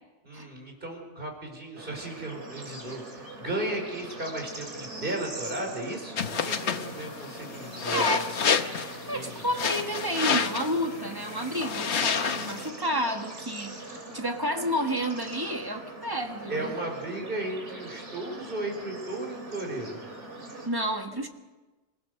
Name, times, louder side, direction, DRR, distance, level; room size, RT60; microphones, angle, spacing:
voice 1, 0.2-8.1 9.1-9.5 12.0-12.3 16.5-20.0, right 2 dB, 45° right, 1 dB, 4.9 m, -35 dB
Bird / Insect / Frog, 1.8-20.7, right 2 dB, 70° right, 3.7 m, -42 dB
sound 1, 6.2-12.7, left 6 dB, 65° left, 1.3 m, -30 dB
voice 2, 7.8-8.3 9.1-16.8 20.6-21.3, equal, 20° right, 4 dB, 1.6 m, -30 dB
26.5 x 16.0 x 6.5 m, 1.2 s
omnidirectional pair, 1.2 m